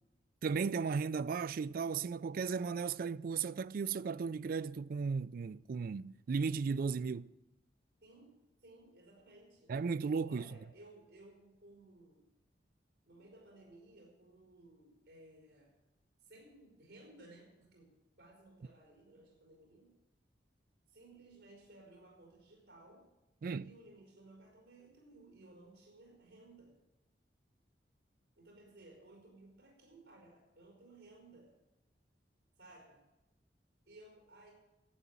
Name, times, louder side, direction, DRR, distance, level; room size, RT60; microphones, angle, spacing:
voice 1, 0.4-7.3 9.7-10.4 23.4-23.7, right 5 dB, 55° right, 0.3 m, -35 dB
voice 2, 8.0-9.7 10.2-12.3 13.1-15.7 16.2-17.9 18.2-19.9 20.9-23.0 23.6-26.7 28.4-31.5 32.6-33.0 33.9-34.5, right 2 dB, 70° right, 4.3 m, -59 dB
12.0 x 8.1 x 8.6 m
head